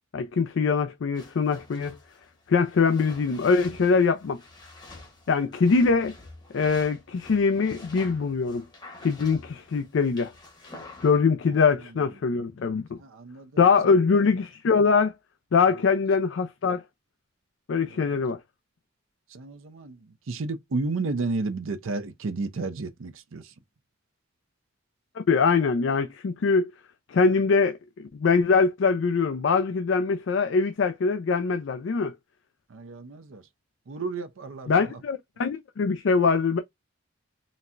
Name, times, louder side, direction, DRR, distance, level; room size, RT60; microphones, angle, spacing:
voice 1, 0.1-2.0 2.5-4.4 5.3-6.1 6.5-8.6 9.0-10.3 11.0-13.0 13.6-15.1 15.5-16.8 17.7-18.4 25.2-26.7 27.1-27.8 28.1-32.1 34.7-36.6, left 5 dB, 70° left, 0.4 m, -23 dB
sound 1, 1.1-11.2, left 2 dB, 20° left, 0.9 m, -48 dB
voice 2, 13.0-13.6 17.9-18.2 19.3-20.0 20.3-23.4 32.7-33.4 33.9-34.9, right 3 dB, 85° right, 0.6 m, -32 dB
4.0 x 2.1 x 2.4 m
head